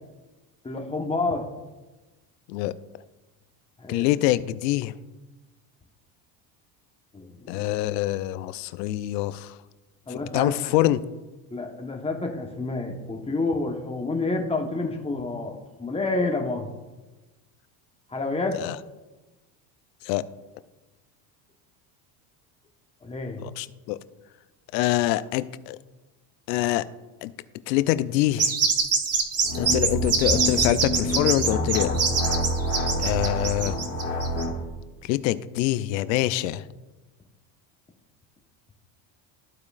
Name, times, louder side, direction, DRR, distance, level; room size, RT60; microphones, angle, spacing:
voice 1, 0.6-1.5 3.8-4.1 7.1-7.6 10.1-10.7 11.5-16.7 18.1-18.6 23.0-23.4, left 3 dB, 10° left, 2 dB, 1.0 m, -29 dB
voice 2, 3.9-4.9 7.5-9.5 10.1-11.0 18.6-18.8 20.1-20.2 23.4-24.0 24.7-25.8 26.5-26.8 27.2-27.3 27.7-28.5 29.6-31.9 33.0-33.8 35.0-36.6, left 15 dB, 90° left, 15 dB, 0.6 m, -25 dB
sound 1, 28.4-34.4, right 5 dB, 30° right, 1.0 m, -24 dB
sound 2, 29.4-34.6, equal, 30° left, 1.8 m, -27 dB
14.0 x 4.8 x 2.4 m, 1.2 s
supercardioid pair, 100°, 48 cm